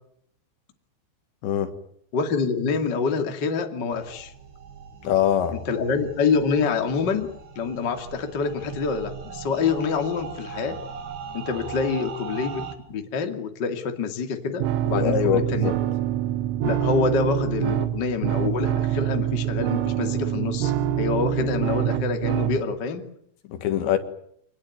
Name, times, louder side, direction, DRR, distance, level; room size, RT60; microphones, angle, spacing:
voice 1, 1.4-1.7 5.0-5.6 14.9-15.7 23.5-24.0, left 9 dB, 70° left, 3.8 m, -23 dB
voice 2, 2.1-4.3 5.5-10.8 11.3-15.8 16.6-23.1, left 5 dB, 35° left, 1.9 m, -26 dB
sound 1, 3.9-12.7, right 6 dB, 60° right, 4.6 m, -39 dB
sound 2, 14.6-22.6, right 12 dB, 85° right, 4.0 m, -25 dB
26.5 x 19.5 x 9.3 m
omnidirectional pair, 5.5 m